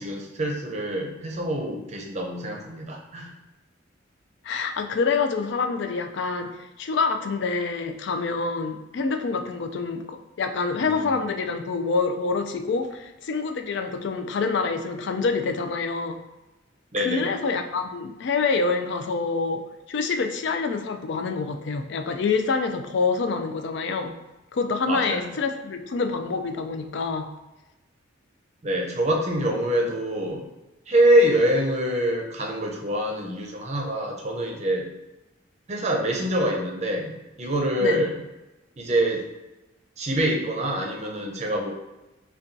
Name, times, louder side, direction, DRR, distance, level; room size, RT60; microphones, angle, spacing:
voice 1, 0.0-3.3 10.7-11.2 16.9-17.3 24.9-25.3 28.6-30.5 30.9-34.9 35.7-37.1 37.4-38.2 38.8-39.2 40.0-41.7, right 1 dB, 35° right, 1 dB, 0.6 m, -25 dB
voice 2, 4.4-16.2 17.0-19.6 19.9-24.1 24.5-27.3 37.8-38.0, left 4 dB, 60° left, 6 dB, 0.4 m, -26 dB
5.3 x 2.3 x 2.6 m, 1.0 s
head